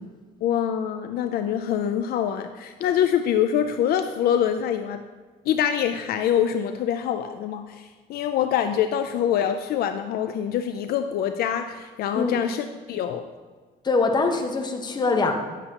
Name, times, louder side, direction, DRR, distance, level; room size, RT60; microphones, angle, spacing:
voice 1, 0.4-5.0 5.5-13.2, left 9 dB, 65° left, 8 dB, 0.4 m, -25 dB
voice 2, 13.8-15.3, left 3 dB, 25° left, 3 dB, 0.9 m, -23 dB
9.7 x 6.9 x 2.9 m, 1.4 s
cardioid pair, 110°, 17 cm